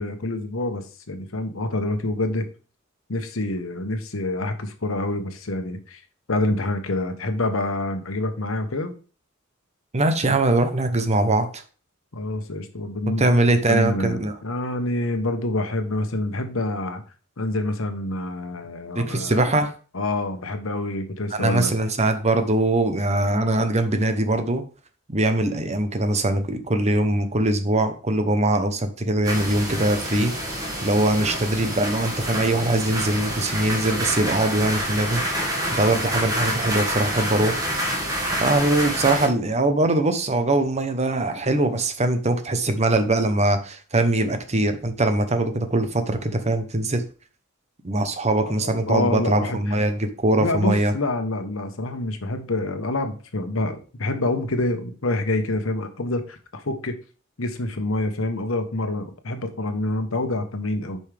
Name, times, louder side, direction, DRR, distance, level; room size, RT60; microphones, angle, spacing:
voice 1, 0.0-2.5 3.1-6.0 6.3-8.9 12.1-17.0 17.4-19.4 19.9-21.7 48.5-49.8 50.4-57.0 57.4-61.0, left 2 dB, 85° left, 7 dB, 1.1 m, -27 dB
voice 2, 9.9-11.6 13.2-14.4 18.9-19.7 21.3-24.6 25.1-37.7 38.4-47.0 47.8-50.9, right 2 dB, 35° right, 8 dB, 0.9 m, -22 dB
sound 1, 29.2-39.3, equal, 20° right, 1.9 m, -27 dB
8.4 x 5.4 x 3.5 m, 0.37 s
head